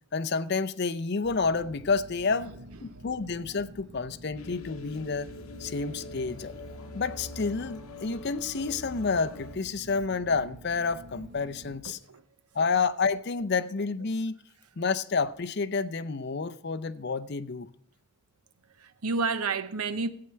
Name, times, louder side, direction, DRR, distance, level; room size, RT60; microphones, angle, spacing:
voice 1, 0.1-2.5 2.8-5.3 5.6-6.5 6.9-12.0 12.5-14.3 14.8-17.7, left 4 dB, 50° left, 0.6 m, -29 dB
sound 1, 1.2-11.8, right 1 dB, 50° right, 0.9 m, -49 dB
sound 2, 4.4-9.6, left 2 dB, 75° left, 0.9 m, -44 dB
voice 2, 11.8-12.2 18.8-20.1, right 4 dB, 85° right, 0.8 m, -31 dB
14.5 x 8.7 x 4.5 m
head